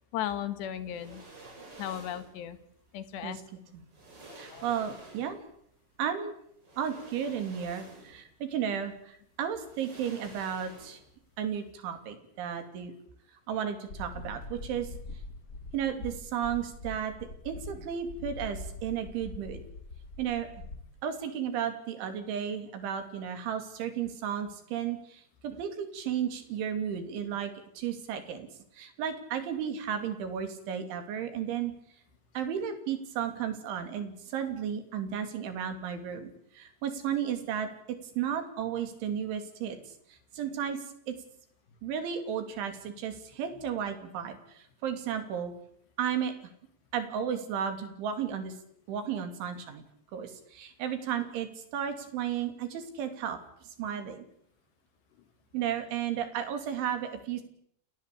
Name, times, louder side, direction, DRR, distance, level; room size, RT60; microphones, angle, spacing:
voice 1, 0.1-1.2 1.8-2.6 2.9-3.4 4.3-4.6 27.3-27.4 35.0-35.1, left 11 dB, 65° left, 12 dB, 3.5 m, -36 dB
sound 1, 0.9-2.4 3.5-3.6 3.9-5.5 6.6-8.3 8.7-8.8 9.6-11.2 11.5-11.6, right 2 dB, 20° right, 5.6 m, -50 dB
voice 2, 4.4-5.4 6.0-6.4 6.8-11.0 11.4-12.9 13.5-14.9 15.7-17.1 17.5-19.6 20.2-20.5 21.0-28.5 28.8-31.7 32.4-39.8 40.3-40.8 41.1-41.2 41.8-45.5 46.0-46.3 46.9-48.5 48.9-49.8 50.1-53.4 53.8-54.2 55.5-57.4, right 8 dB, 70° right, 7 dB, 5.3 m, -33 dB
sound 2, 13.9-20.8, left 2 dB, 25° left, 2.6 m, -43 dB
30.0 x 18.5 x 8.6 m, 0.69 s
omnidirectional pair, 5.7 m